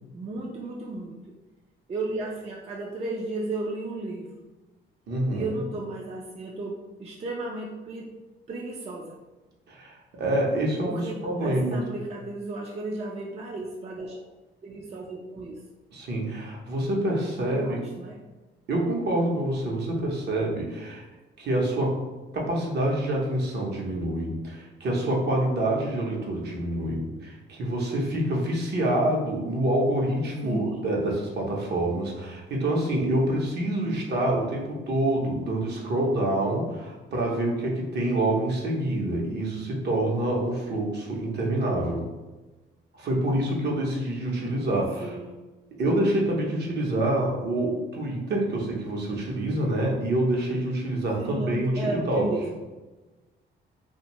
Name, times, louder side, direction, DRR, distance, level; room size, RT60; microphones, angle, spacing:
voice 1, 0.1-1.2 1.9-4.3 5.3-8.1 8.5-9.2 10.8-14.2 14.6-15.6 17.5-18.2 30.4-30.9 45.0-45.4 51.2-52.6, right 2 dB, 30° right, -2 dB, 0.4 m, -34 dB
voice 2, 5.1-5.5 9.7-11.8 15.9-17.8 18.7-21.0 21.4-22.1 22.3-42.1 42.9-45.2 45.8-52.3, right 1 dB, 60° right, -1 dB, 0.7 m, -26 dB
2.5 x 2.2 x 2.9 m, 1.2 s
cardioid pair, 90°, 20 cm